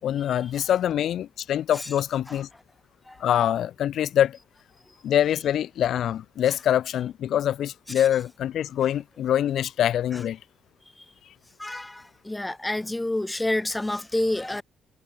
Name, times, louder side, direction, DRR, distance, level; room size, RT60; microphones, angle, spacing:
voice 1, 0.0-2.5 3.2-4.4 5.0-10.4, left 10 dB, 70° left, 6.0 m, -24 dB
voice 2, 11.6-14.6, left 1 dB, 10° left, 3.5 m, -28 dB
cardioid pair, 90°, 0 cm